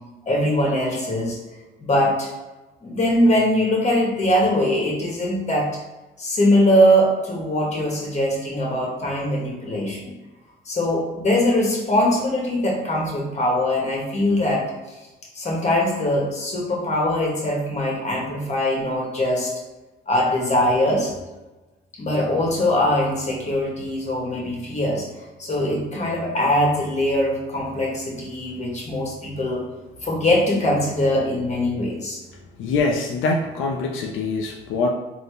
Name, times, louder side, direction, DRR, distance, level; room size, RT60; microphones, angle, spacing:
voice 1, 0.2-1.4 1.8-2.3 2.8-5.7 6.2-10.1 10.6-14.6 15.3-19.5 20.1-21.1 22.0-25.1 25.4-29.6 30.0-32.2, left 1 dB, 35° left, -2 dB, 1.4 m, -21 dB
voice 2, 32.6-34.9, left 3 dB, 85° left, 1 dB, 0.5 m, -24 dB
4.1 x 2.8 x 3.4 m, 1.1 s
cardioid pair, 90°, 20 cm